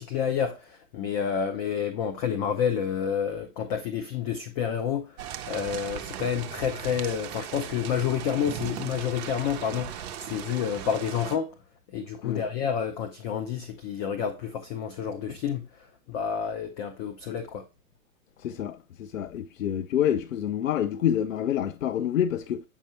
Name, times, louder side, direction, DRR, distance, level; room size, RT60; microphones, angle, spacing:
voice 1, 0.0-11.5 11.9-15.7 16.1-17.7, left 8 dB, 30° left, 0.6 m, -29 dB
sound 1, 5.2-11.4, right 11 dB, 30° right, 0.6 m, -38 dB
voice 2, 18.4-22.6, left 10 dB, 65° left, 0.6 m, -27 dB
8.5 x 5.4 x 2.8 m
figure-of-eight pair, 110°, 42 cm